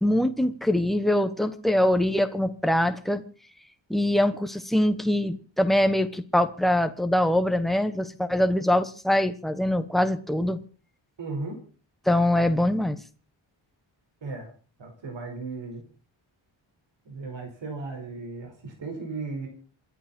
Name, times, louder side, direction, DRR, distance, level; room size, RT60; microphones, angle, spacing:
voice 1, 0.0-3.2 3.9-10.6 12.1-13.0, left 1 dB, ahead, 9 dB, 1.1 m, -23 dB
voice 2, 11.2-11.6 14.2-14.5 14.8-15.9 17.1-19.5, right 3 dB, 65° right, 3 dB, 5.1 m, -35 dB
27.0 x 10.5 x 4.4 m, 0.38 s
wide cardioid pair, 175°, 48 cm